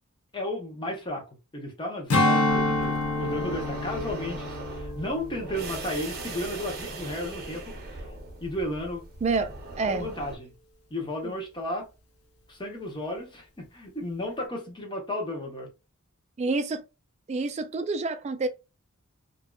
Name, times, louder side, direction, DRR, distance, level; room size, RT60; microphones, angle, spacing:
voice 1, 0.3-1.2 1.5-8.1 8.4-9.0 9.9-10.5 10.9-11.9 12.5-15.7, left 1 dB, 25° left, 0.8 m, -34 dB
Strum, 2.1-6.8 7.2-7.4, left 2 dB, 80° left, 0.7 m, -28 dB
sound 1, 2.5-10.4, right 3 dB, 50° right, 0.8 m, -40 dB
voice 2, 9.2-10.1 11.2-11.3 16.4-16.8 17.3-18.5, right 3 dB, 30° right, 0.3 m, -28 dB
2.6 x 2.3 x 2.3 m
head